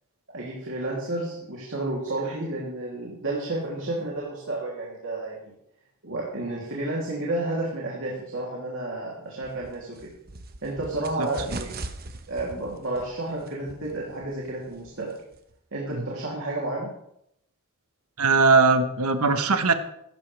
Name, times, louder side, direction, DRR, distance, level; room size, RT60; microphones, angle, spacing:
voice 1, 0.3-5.5 6.0-10.0 10.6-11.7 12.3-15.1 15.7-16.9, right 2 dB, 60° right, -4 dB, 3.1 m, -31 dB
sound 1, 9.4-15.6, right 2 dB, 45° right, 1.1 m, -41 dB
voice 2, 18.2-19.7, right 4 dB, 80° right, 8 dB, 1.3 m, -20 dB
16.0 x 13.5 x 3.4 m, 0.77 s
head